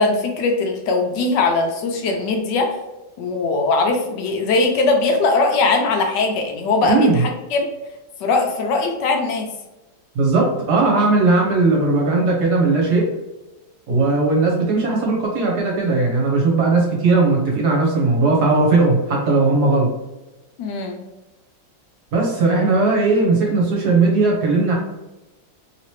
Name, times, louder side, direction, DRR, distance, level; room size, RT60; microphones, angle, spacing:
voice 1, 0.0-2.7 3.2-7.7 8.2-9.5 13.9-14.0 20.6-21.0, left 3 dB, 75° left, 3 dB, 1.1 m, -20 dB
voice 2, 6.8-7.2 10.1-13.1 13.9-19.9 22.1-24.8, right 3 dB, 65° right, -1 dB, 1.2 m, -17 dB
3.2 x 2.9 x 3.0 m, 1.0 s
omnidirectional pair, 2.1 m